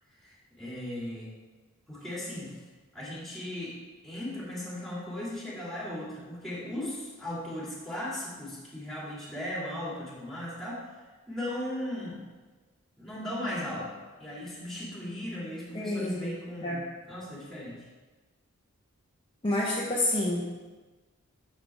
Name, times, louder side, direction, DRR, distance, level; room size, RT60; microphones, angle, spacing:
voice 1, 0.2-1.3 1.9-2.5 2.9-3.8 4.0-10.9 11.3-12.2 13.0-16.8 17.1-17.9, left 1 dB, ahead, -6 dB, 2.6 m, -37 dB
voice 2, 15.7-16.3 16.6-16.8 19.4-20.4, left 1 dB, 25° left, -6 dB, 1.0 m, -28 dB
10.0 x 6.5 x 3.6 m, 1.3 s
head